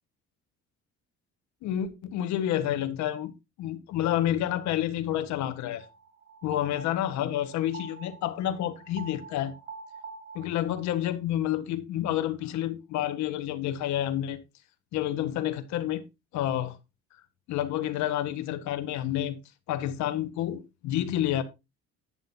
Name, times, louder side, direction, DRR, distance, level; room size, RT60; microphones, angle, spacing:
voice 1, 1.6-3.3 3.6-5.9 6.4-9.5 10.3-14.4 14.9-16.0 16.3-16.8 17.5-19.4 19.7-21.4, left 12 dB, 75° left, 1.5 m, -29 dB
sound 1, 5.8-11.0, right 5 dB, 40° right, 1.8 m, -46 dB
11.0 x 10.0 x 2.8 m
cardioid pair, 165°, 29 cm